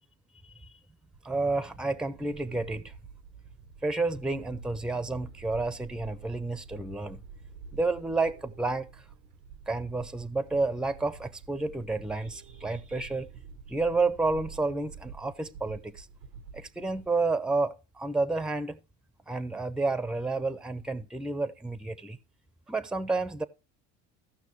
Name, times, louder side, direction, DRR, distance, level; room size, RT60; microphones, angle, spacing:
sound 1, 1.1-17.1, right 6 dB, 90° right, 1.2 m, -49 dB
voice 1, 1.2-2.9 3.8-7.2 7.7-9.0 9.7-13.3 13.7-16.1 16.5-18.8 19.3-22.2 22.7-23.4, right 3 dB, ahead, 0.7 m, -30 dB
15.5 x 5.7 x 3.2 m
supercardioid pair, 85°, 36 cm